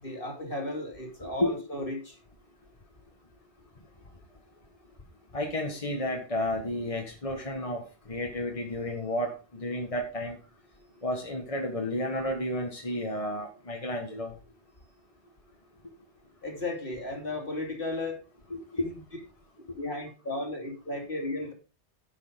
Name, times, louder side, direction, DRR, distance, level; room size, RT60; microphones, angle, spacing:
voice 1, 0.0-2.2 16.4-18.2 18.8-19.0 19.7-21.5, left 2 dB, 55° left, 3.0 m, -35 dB
voice 2, 5.3-10.4 11.0-14.3 18.7-18.9, left 1 dB, 30° left, 1.7 m, -31 dB
10.5 x 6.9 x 5.1 m
omnidirectional pair, 1.1 m